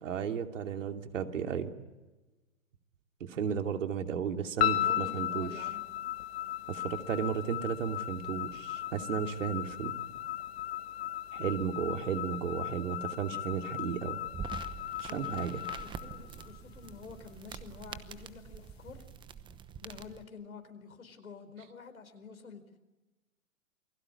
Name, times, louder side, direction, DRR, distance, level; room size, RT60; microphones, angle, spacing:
voice 1, 0.0-1.7 3.2-5.5 6.7-10.0 11.3-14.2 15.0-15.6, right 7 dB, 65° right, 6 dB, 2.8 m, -34 dB
sound 1, 4.6-16.9, left 13 dB, 50° left, 1.8 m, -36 dB
voice 2, 4.7-5.9 15.0-15.5 15.8-19.0 19.8-22.6, left 5 dB, 90° left, 8 dB, 4.6 m, -48 dB
sound 2, 14.2-20.2, right 7 dB, 10° right, 1.0 m, -45 dB
28.5 x 20.5 x 9.9 m, 1.2 s
hypercardioid pair, 135°, 41 cm